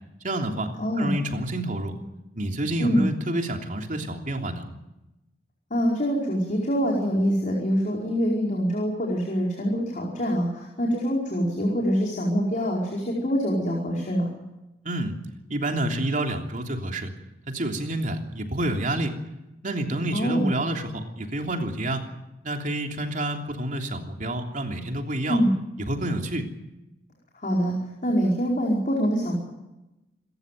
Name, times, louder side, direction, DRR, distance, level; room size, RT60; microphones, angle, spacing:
voice 1, 0.2-0.7 1.0-1.9 2.3-4.7 14.8-15.2 15.5-17.1 17.5-19.1 19.6-22.0 22.4-25.4 25.8-26.5, right 1 dB, 45° right, 3 dB, 3.2 m, -28 dB
voice 2, 0.8-1.1 2.8-3.0 5.7-14.3 20.1-20.5 25.3-25.5 27.4-29.3, equal, 45° left, -1 dB, 5.0 m, -25 dB
27.5 x 14.5 x 9.3 m, 0.96 s
head